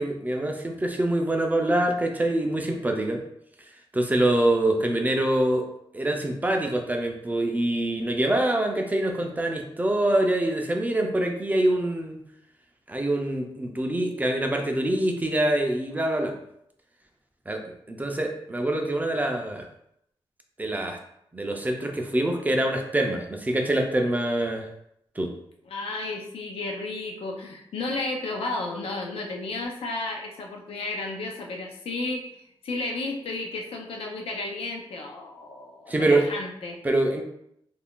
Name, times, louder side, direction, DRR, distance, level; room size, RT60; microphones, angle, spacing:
voice 1, 0.0-3.2 3.9-5.6 5.9-12.2 12.9-16.4 17.5-17.6 17.9-19.7 20.6-21.0 21.3-24.7 25.2-25.3 35.9-36.3 36.8-37.2, right 1 dB, 15° right, 3 dB, 0.4 m, -25 dB
voice 2, 25.7-36.8, left 2 dB, 85° left, 1 dB, 0.5 m, -33 dB
2.4 x 2.3 x 3.6 m, 0.75 s
wide cardioid pair, 115°, 9 cm